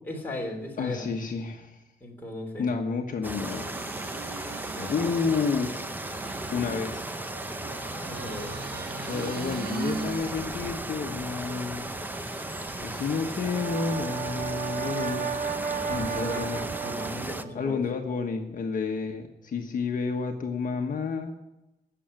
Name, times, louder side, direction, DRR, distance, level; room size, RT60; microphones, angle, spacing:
voice 1, 0.0-1.1 2.0-2.7 4.7-5.2 8.1-8.6 15.7-16.4 16.8-17.8, left 1 dB, 10° left, -1 dB, 3.2 m, -37 dB
voice 2, 0.8-1.8 2.6-3.7 4.9-5.7 6.5-7.0 9.1-11.9 12.8-15.4 15.8-16.7 17.5-21.4, left 5 dB, 50° left, 3 dB, 1.3 m, -30 dB
sound 1, 3.2-17.4, right 1 dB, 10° right, 0.7 m, -36 dB
sound 2, 3.4-13.9 14.4-14.5, right 4 dB, 65° right, 1.6 m, -41 dB
Brass instrument, 13.3-17.5, right 7 dB, 85° right, 1.4 m, -33 dB
16.5 x 7.1 x 9.1 m, 0.97 s
wide cardioid pair, 150°, 17 cm